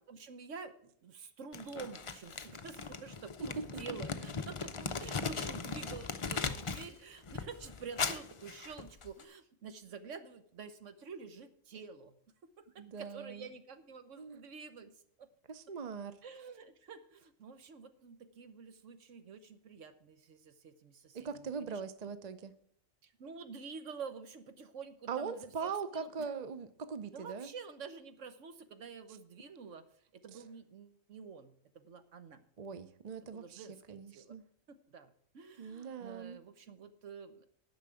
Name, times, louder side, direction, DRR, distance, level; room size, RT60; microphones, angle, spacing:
voice 1, 0.0-12.1 12.6-12.7 13.0-15.3 16.2-22.1 23.0-26.3 27.1-29.9 30.1-32.4 33.2-34.3 34.7-37.4, right 5 dB, 65° right, 9 dB, 1.3 m, -49 dB
Crumpling crinkling, 1.5-6.9 7.2-9.2, left 5 dB, 40° left, 0.4 m, -39 dB
voice 2, 12.8-13.5 14.2-14.4 15.5-16.2 21.1-22.5 25.1-27.5 32.6-34.4 35.6-36.4, right 5 dB, 40° right, 12 dB, 0.6 m, -41 dB
10.5 x 6.0 x 7.6 m, 0.63 s
omnidirectional pair, 1.4 m